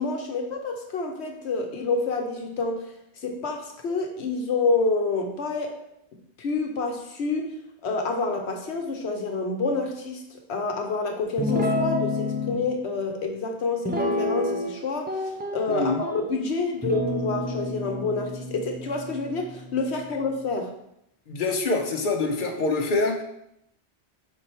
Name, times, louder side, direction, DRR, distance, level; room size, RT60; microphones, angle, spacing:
voice 1, 0.0-2.8 3.2-5.8 6.4-7.5 7.8-20.7, left 3 dB, 75° left, 3 dB, 1.0 m, -28 dB
Guitar, 11.4-12.6 13.8-14.8 15.1-16.2 16.8-20.3, left 2 dB, 15° right, 0.4 m, -29 dB
voice 2, 15.7-16.0 21.3-23.2, left 3 dB, 50° left, 3 dB, 1.0 m, -25 dB
5.2 x 4.9 x 4.3 m, 0.78 s
omnidirectional pair, 1.1 m